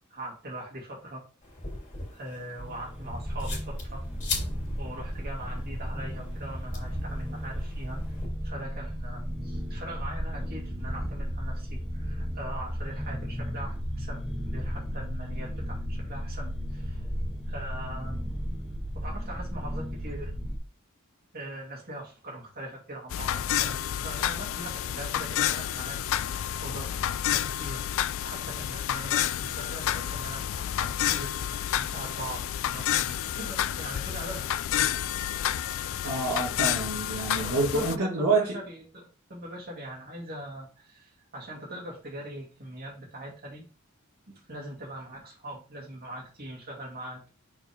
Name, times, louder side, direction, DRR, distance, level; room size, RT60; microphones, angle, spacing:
voice 1, 0.1-1.2 2.1-4.0 4.8-8.0 8.4-17.0 17.5-18.3 18.9-20.3 21.3-26.0 26.6-34.5 37.4-43.6 44.3-47.2, right 1 dB, 45° right, -2 dB, 2.7 m, -41 dB
sound 1, 1.4-8.3, left 3 dB, 35° left, 2.8 m, -40 dB
sound 2, 2.6-20.6, equal, 5° right, 0.8 m, -34 dB
sound 3, 23.1-38.0, left 11 dB, 65° left, 0.4 m, -30 dB
voice 2, 36.0-38.4, right 3 dB, 75° right, -2 dB, 2.0 m, -27 dB
5.9 x 4.5 x 3.6 m, 0.36 s
head